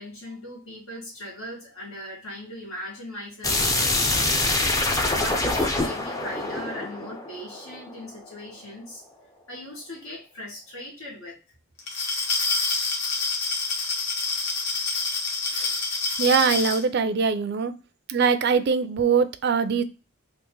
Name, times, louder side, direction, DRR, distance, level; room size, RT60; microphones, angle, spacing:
voice 1, 0.0-4.3 4.9-9.0 9.5-11.4, left 1 dB, 80° left, 1.5 m, -39 dB
sound 1, 3.4-8.2, left 2 dB, 15° left, 0.4 m, -25 dB
Glass, 11.8-16.8, left 4 dB, 50° left, 0.9 m, -27 dB
voice 2, 16.2-17.7 18.1-19.8, right 5 dB, 45° right, 0.4 m, -22 dB
3.0 x 2.5 x 3.6 m
head